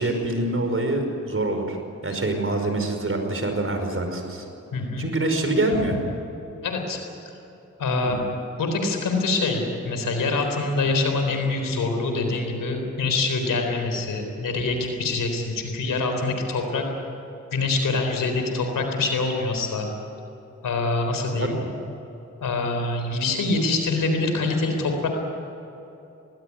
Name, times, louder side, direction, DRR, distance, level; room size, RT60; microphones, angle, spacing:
voice 1, 0.0-1.8 2.0-4.5 5.0-6.0 7.9-8.2 21.4-21.7, right 2 dB, 45° right, 5 dB, 5.2 m, -25 dB
voice 2, 4.7-5.1 6.6-7.0 7.8-8.2 8.6-16.9 17.5-19.9 20.6-21.6 22.4-25.1, left 3 dB, 90° left, 4 dB, 3.9 m, -25 dB
20.0 x 19.5 x 9.6 m, 2.9 s
cardioid pair, 45°, 31 cm